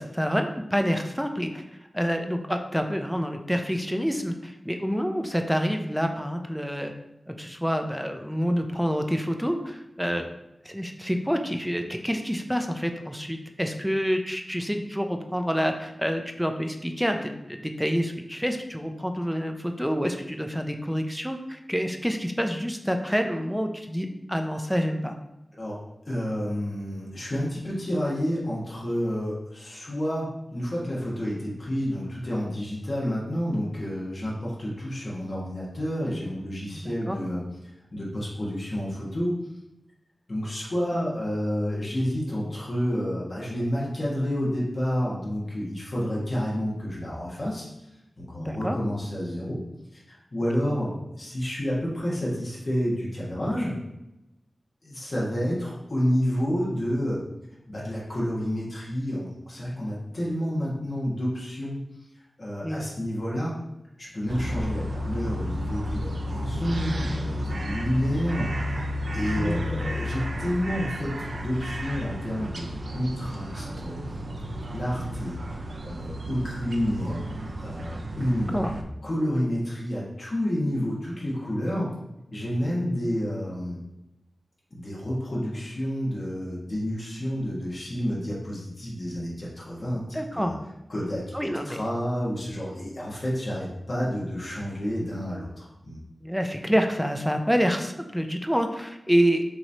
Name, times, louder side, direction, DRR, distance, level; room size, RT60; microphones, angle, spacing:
voice 1, 0.0-1.6 1.9-6.9 7.3-10.3 10.6-25.2 36.7-37.2 48.4-48.8 62.6-62.8 69.2-70.0 78.5-78.7 89.9-90.5 91.3-91.8 96.2-99.4, equal, ahead, 5 dB, 0.5 m, -27 dB
voice 2, 26.1-37.4 37.9-39.4 40.3-47.9 48.2-49.6 49.9-53.8 54.8-57.2 57.7-61.8 62.4-63.6 64.0-68.5 69.1-74.2 74.7-75.4 75.8-78.6 79.0-81.9 82.3-83.8 84.7-90.0 90.3-90.5 90.9-96.0, equal, 50° left, -6 dB, 1.4 m, -29 dB
sound 1, 64.3-78.8, equal, 70° right, 0.4 m, -32 dB
5.9 x 3.1 x 2.8 m, 0.88 s
wide cardioid pair, 75°, 0 cm